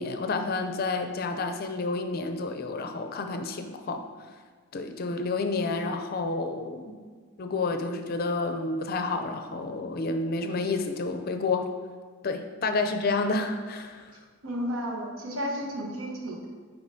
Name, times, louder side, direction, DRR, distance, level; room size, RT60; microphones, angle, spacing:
voice 1, 0.0-4.0 4.7-6.9 7.4-11.7 12.2-14.1, left 3 dB, 45° left, 7 dB, 0.4 m, -30 dB
voice 2, 14.4-16.5, equal, 90° right, 0 dB, 1.1 m, -32 dB
8.1 x 4.9 x 2.7 m, 1.5 s
head